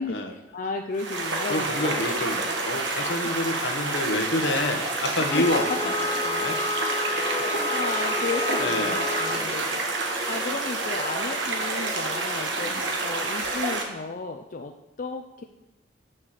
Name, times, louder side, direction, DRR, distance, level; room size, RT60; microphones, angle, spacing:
voice 1, 0.0-1.7 3.2-3.4 5.3-5.8 6.1-6.2 7.1-15.4, left 3 dB, 50° left, 4 dB, 0.5 m, -34 dB
sound 1, 0.9-13.8, right 3 dB, 80° right, 1.5 m, -28 dB
voice 2, 1.5-6.6 7.1-7.2 8.6-9.5 12.6-13.0, left 2 dB, 70° left, 5 dB, 1.1 m, -29 dB
sound 2, 5.2-9.5, left 4 dB, 15° left, 0.8 m, -31 dB
7.5 x 6.4 x 6.5 m, 0.99 s
head